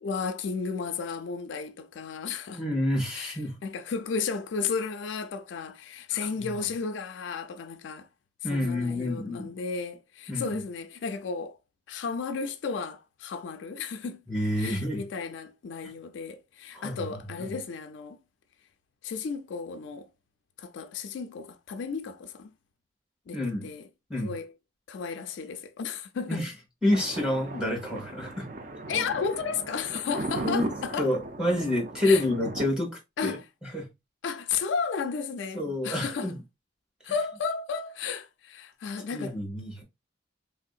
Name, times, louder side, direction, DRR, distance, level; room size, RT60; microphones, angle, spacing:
voice 1, 0.0-2.6 3.1-8.1 8.5-11.6 11.9-14.2 14.6-18.2 19.0-20.1 20.6-22.5 23.3-23.9 24.2-24.5 24.9-26.4 28.9-31.1 32.0-32.2 33.2-33.5 34.2-36.3 37.0-39.4, left 5 dB, 70° left, 0.3 m, -33 dB
voice 2, 2.5-3.5 6.1-6.7 8.4-9.5 10.3-10.6 14.3-15.0 16.7-17.0 17.4-17.5 23.3-23.7 24.1-24.3 26.3-26.5 26.8-28.4 30.1-30.2 30.4-30.6 31.0-33.4 33.7-33.9 35.5-36.4 39.1-39.8, left 1 dB, 5° right, 1.0 m, -28 dB
Thunder, 26.9-32.7, right 2 dB, 40° right, 0.4 m, -37 dB
3.3 x 2.7 x 2.3 m
head